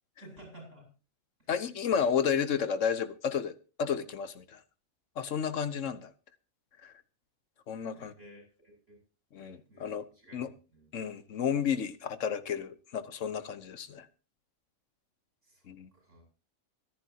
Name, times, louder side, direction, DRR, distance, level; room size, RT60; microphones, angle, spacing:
voice 1, 0.2-0.8 7.9-9.0 9.4-9.9 10.2-10.4 10.7-10.9 15.5-15.6 15.9-16.2, right 1 dB, 60° right, 8.5 m, -53 dB
voice 2, 1.5-4.6 5.2-6.1 6.8-6.9 7.7-8.1 9.3-10.0 10.3-10.5 10.9-14.1 15.7-15.9, left 7 dB, 65° left, 1.2 m, -32 dB
25.0 x 10.0 x 2.8 m
omnidirectional pair, 1.5 m